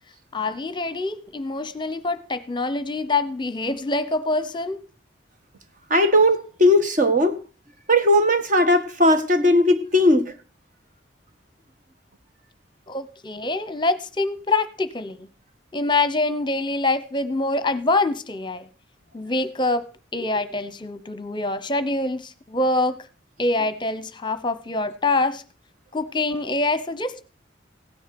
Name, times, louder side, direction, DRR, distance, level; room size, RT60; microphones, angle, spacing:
voice 1, 0.3-4.8 12.9-15.3 15.7-18.7 19.1-23.1 23.4-25.4 25.9-27.2, left 2 dB, 25° left, 0.9 m, -25 dB
voice 2, 5.9-7.4 7.9-10.3, left 1 dB, 45° right, 1.8 m, -18 dB
16.5 x 10.0 x 6.0 m
head